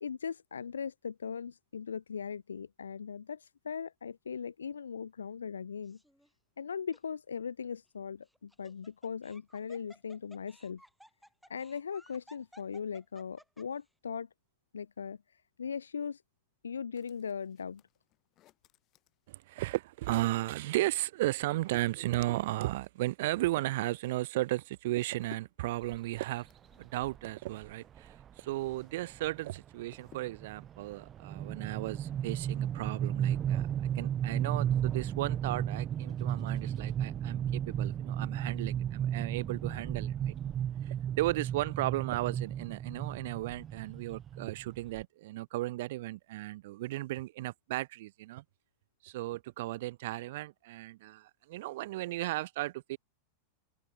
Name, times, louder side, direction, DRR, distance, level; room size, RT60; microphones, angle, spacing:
voice 1, 0.0-6.0 6.6-10.8 11.5-14.3 14.7-15.2 15.6-16.2 16.6-17.8, left 6 dB, 70° left, 0.6 m, -39 dB
Laughter, 5.8-6.3 6.9-7.0 8.3-13.9, equal, ahead, 6.7 m, -59 dB
sound 1, 16.9-19.8 20.8-29.0 29.3-30.6, left 15 dB, 35° left, 6.5 m, -62 dB
voice 2, 19.3-26.5 26.8-33.7 33.9-40.4 40.8-48.4 49.0-53.0, right 17 dB, 55° right, 0.4 m, -35 dB
sound 2, 25.9-26.2 27.0-27.2 27.6-27.7 28.0-28.3 28.7-45.0, right 10 dB, 25° right, 1.1 m, -34 dB
open air
figure-of-eight pair, 90°, 0 cm